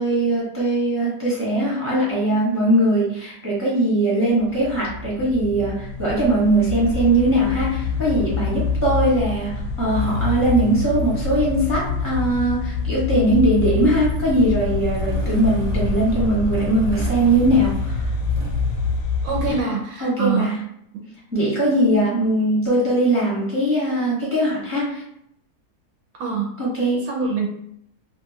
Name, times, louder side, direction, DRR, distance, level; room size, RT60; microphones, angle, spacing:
voice 1, 0.0-9.5 9.8-18.1 19.5-19.7 20.0-20.6 21.3-25.0 26.6-27.1, right 1 dB, 15° right, -6 dB, 0.6 m, -20 dB
sound 1, 4.4-19.6, left 4 dB, 80° left, 1.1 m, -26 dB
Motorcycle / Engine starting, 9.9-19.0, right 1 dB, 65° right, 1.1 m, -31 dB
voice 2, 19.2-20.5 20.9-21.0 26.2-26.5 27.1-27.5, right 6 dB, 90° right, -1 dB, 1.2 m, -24 dB
2.8 x 2.3 x 2.7 m, 0.75 s
omnidirectional pair, 1.7 m